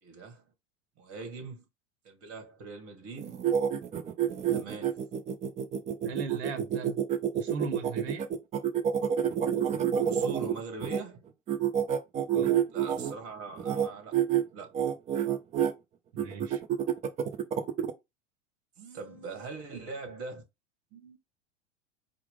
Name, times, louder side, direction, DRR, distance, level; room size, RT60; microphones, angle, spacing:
voice 1, 0.0-0.4 1.0-1.7 2.0-3.4 4.5-5.0 10.0-11.2 12.7-14.2 14.5-14.7 18.8-20.4 20.9-21.2, right 4 dB, 40° right, 1.5 m, -42 dB
sound 1, 3.2-11.0 11.5-13.1 13.6-13.9 14.1-14.4 14.7-15.7 16.2-17.9, right 9 dB, 20° right, 0.4 m, -28 dB
voice 2, 6.0-7.0 7.3-8.3 12.3-12.5 16.1-16.6, right 5 dB, 65° right, 0.9 m, -38 dB
4.5 x 2.1 x 3.6 m
hypercardioid pair, 90°, 37 cm